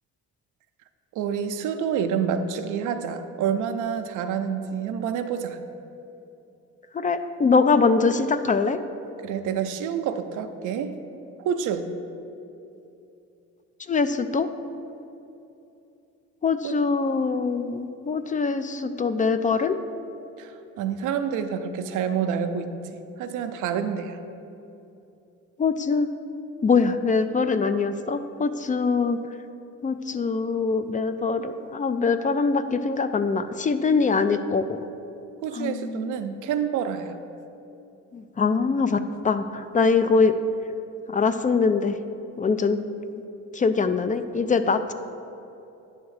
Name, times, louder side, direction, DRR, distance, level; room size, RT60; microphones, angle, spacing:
voice 1, 1.1-5.6 9.2-10.9 11.4-11.9 16.6-16.8 20.4-22.7 23.2-24.2 35.4-37.1, right 7 dB, 90° right, 8 dB, 0.6 m, -28 dB
voice 2, 6.9-8.8 13.9-14.5 16.4-19.8 25.6-26.1 26.6-29.2 29.8-34.8 35.5-36.1 38.1-40.3 41.1-42.0 42.4-42.8 43.5-44.9, left 4 dB, 25° left, 10 dB, 0.3 m, -23 dB
9.4 x 3.5 x 6.4 m, 2.8 s
cardioid pair, 90°, 30 cm